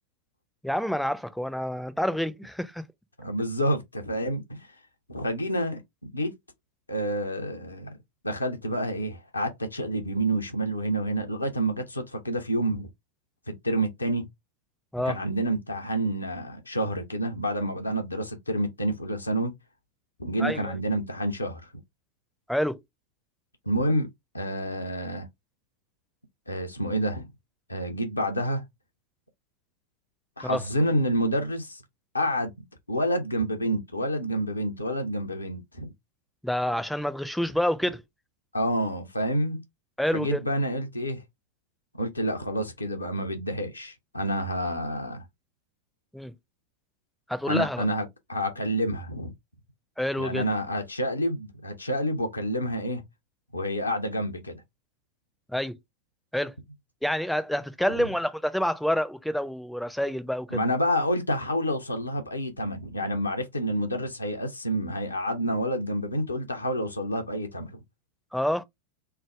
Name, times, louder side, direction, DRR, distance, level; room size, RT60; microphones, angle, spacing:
voice 1, 0.6-2.8 14.9-15.2 20.4-20.7 22.5-22.8 30.4-30.6 36.4-38.0 40.0-40.4 46.1-46.3 47.3-47.9 50.0-50.4 55.5-55.8 56.3-56.5 57.0-60.6 68.3-68.6, equal, ahead, 0.5 m, -28 dB
voice 2, 3.2-4.7 5.1-5.8 6.1-6.3 6.9-7.9 8.2-12.9 13.5-14.3 15.1-19.5 20.2-21.7 23.7-24.1 24.3-25.3 26.5-27.3 27.7-28.6 30.4-31.8 32.1-32.5 32.9-35.9 38.5-39.6 40.1-41.2 42.0-45.2 47.5-49.3 50.2-53.0 53.5-54.6 57.9-58.1 60.5-67.8, equal, 80° left, 0.7 m, -28 dB
3.4 x 2.0 x 3.4 m
figure-of-eight pair, 90°, 0 cm